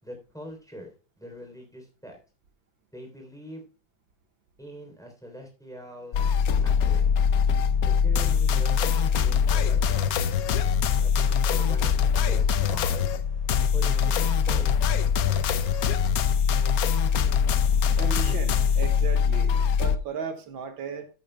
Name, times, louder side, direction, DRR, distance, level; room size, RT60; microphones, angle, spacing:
voice 1, 0.0-0.9 1.2-2.2 2.9-3.7 4.6-6.3 6.6-7.1 7.8-10.4 11.0-13.0 13.7-14.7, equal, ahead, 2 dB, 3.3 m, -43 dB
sound 1, 6.1-20.0, left 7 dB, 65° left, 0.9 m, -23 dB
voice 2, 18.0-21.1, right 6 dB, 75° right, 6 dB, 2.1 m, -36 dB
14.5 x 8.5 x 2.2 m, 0.34 s
omnidirectional pair, 2.2 m